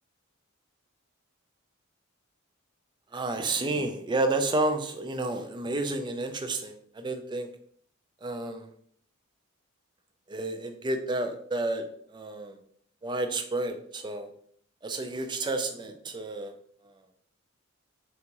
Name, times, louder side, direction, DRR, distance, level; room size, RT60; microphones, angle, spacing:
voice 1, 3.1-7.5 8.2-8.7 10.3-11.8 12.1-12.5 13.0-14.3 14.8-16.5, right 2 dB, 20° right, 7 dB, 0.4 m, -30 dB
3.8 x 3.5 x 2.9 m, 0.63 s
head